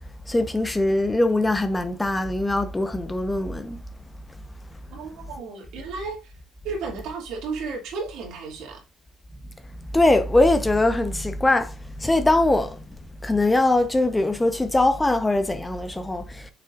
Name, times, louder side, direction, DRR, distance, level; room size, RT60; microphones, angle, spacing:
voice 1, 0.3-3.8 9.9-12.8 13.2-16.5, left 2 dB, 15° left, 0.9 m, -22 dB
voice 2, 4.9-6.3 6.6-8.8, right 4 dB, 60° right, 2.6 m, -33 dB
6.8 x 6.6 x 2.5 m
figure-of-eight pair, 50°, 0 cm